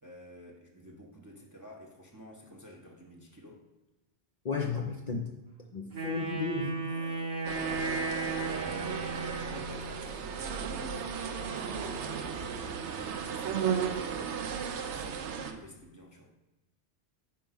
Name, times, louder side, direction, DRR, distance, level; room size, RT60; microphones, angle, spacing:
voice 1, 0.0-3.6 6.8-7.5 8.2-12.2 12.5-16.3, right 1 dB, 20° right, -1 dB, 0.6 m, -50 dB
voice 2, 4.4-5.3 5.7-6.7, left 4 dB, 50° left, 1 dB, 0.6 m, -33 dB
Wind instrument woodwind instrument, 5.9-9.9, right 3 dB, 70° right, 1.4 m, -35 dB
sound 1, 7.4-15.5, right 7 dB, 85° right, 0.9 m, -35 dB
4.6 x 4.4 x 5.5 m, 1.0 s
omnidirectional pair, 1.1 m